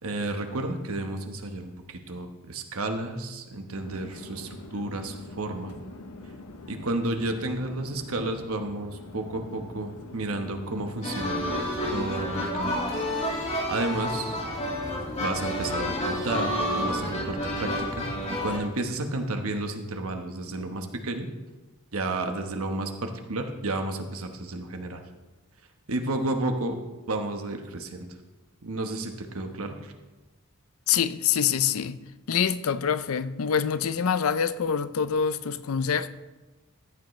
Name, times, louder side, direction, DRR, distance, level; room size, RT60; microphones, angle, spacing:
voice 1, 0.0-5.8 6.7-11.5 11.9-12.8 13.3-14.4 15.2-18.0 18.4-21.3 21.9-25.0 25.9-26.8 27.1-28.1 28.6-29.9, right 2 dB, 70° right, 1.2 m, -32 dB
Conversation / Chatter / Fixed-wing aircraft airplane, 3.7-11.7, left 2 dB, 90° left, 0.9 m, -44 dB
sound 1, 11.0-18.6, left 1 dB, 30° left, 2.1 m, -29 dB
voice 2, 30.9-32.0 32.3-36.1, left 7 dB, 70° left, 0.5 m, -25 dB
14.0 x 9.0 x 3.2 m
head